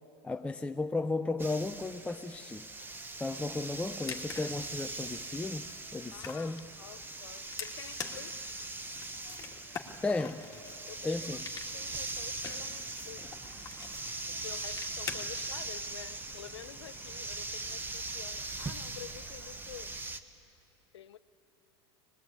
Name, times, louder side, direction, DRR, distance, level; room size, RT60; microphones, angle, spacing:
voice 1, 0.2-2.7 3.2-6.6 10.0-10.5 11.0-11.4, left 3 dB, 10° left, 0.6 m, -34 dB
sound 1, 1.4-20.2, right 2 dB, 15° right, 1.2 m, -41 dB
sound 2, 2.8-20.2, right 5 dB, 65° right, 2.3 m, -64 dB
sound 3, 3.7-15.7, left 6 dB, 25° left, 2.1 m, -47 dB
voice 2, 6.1-8.6 10.9-13.8 14.3-20.6 20.9-21.2, left 10 dB, 85° left, 0.7 m, -50 dB
24.0 x 20.5 x 8.8 m
hypercardioid pair, 100°, 14 cm